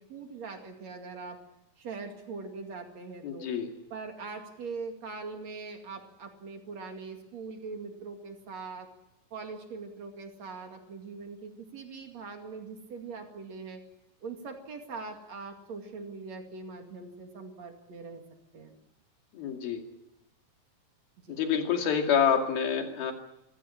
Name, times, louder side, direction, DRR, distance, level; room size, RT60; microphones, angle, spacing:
voice 1, 0.0-1.4 1.8-3.5 3.9-8.9 9.3-13.8 14.2-18.2 18.5-18.7 21.3-21.4, right 4 dB, 50° right, 4 dB, 3.3 m, -42 dB
voice 2, 3.2-3.7 19.3-19.8 21.3-23.1, left 7 dB, 85° left, 4 dB, 4.2 m, -27 dB
25.5 x 15.5 x 10.0 m, 0.89 s
omnidirectional pair, 4.2 m